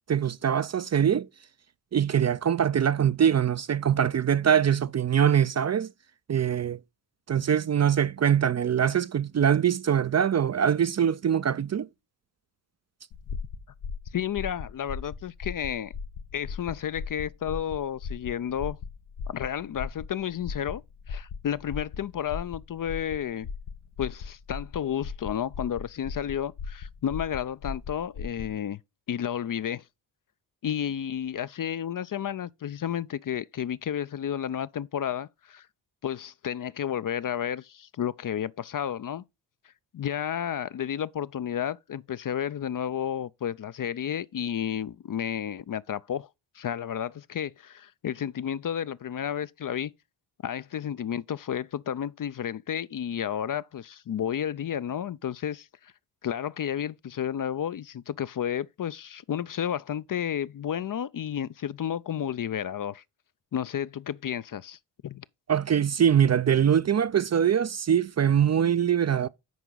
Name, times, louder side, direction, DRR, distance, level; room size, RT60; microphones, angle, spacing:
voice 1, 0.1-1.3 1.9-5.9 6.3-6.8 7.3-11.9 65.5-69.3, right 8 dB, 35° right, 0.5 m, -23 dB
sound 1, 13.1-28.5, left 5 dB, 85° left, 1.2 m, -38 dB
voice 2, 14.1-15.9 16.3-18.8 19.3-20.8 21.1-23.5 24.0-28.8 29.1-29.8 30.6-35.7 36.0-39.2 39.9-46.3 46.5-49.9 50.4-55.9 56.2-63.0 63.5-65.2, left 9 dB, 45° left, 0.5 m, -32 dB
9.3 x 4.6 x 3.9 m
supercardioid pair, 45°, 48 cm